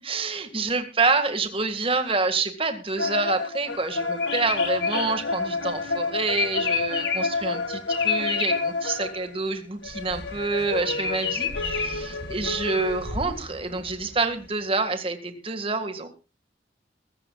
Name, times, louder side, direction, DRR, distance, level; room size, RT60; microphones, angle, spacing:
voice 1, 0.0-16.1, right 3 dB, 30° right, 8 dB, 1.8 m, -27 dB
sound 1, 3.0-9.3 9.8-13.3, left 3 dB, 90° left, 1.7 m, -30 dB
sound 2, 4.1-7.4 7.9-8.5 10.9-11.9, left 7 dB, 75° left, 3.3 m, -29 dB
sound 3, 9.8-14.7, left 1 dB, 55° left, 1.7 m, -40 dB
23.0 x 14.0 x 2.4 m, 0.30 s
head